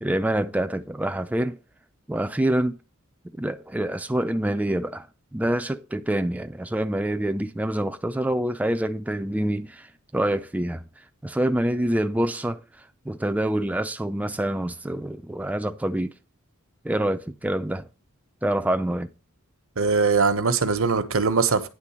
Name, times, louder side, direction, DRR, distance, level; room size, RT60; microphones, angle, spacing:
voice 1, 0.0-1.6 2.1-2.8 3.4-5.1 5.3-16.1 16.8-17.9 18.4-19.1, right 1 dB, 5° right, 0.4 m, -26 dB
voice 2, 19.8-21.7, right 4 dB, 70° right, 1.1 m, -21 dB
9.9 x 3.8 x 7.3 m
head